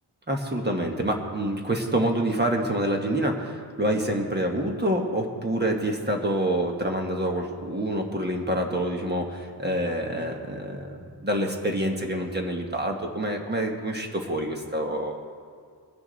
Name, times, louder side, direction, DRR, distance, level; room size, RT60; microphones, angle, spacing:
voice 1, 0.3-15.2, right 1 dB, 25° right, 2 dB, 1.3 m, -27 dB
21.5 x 9.7 x 4.0 m, 2.2 s
wide cardioid pair, 160°, 43 cm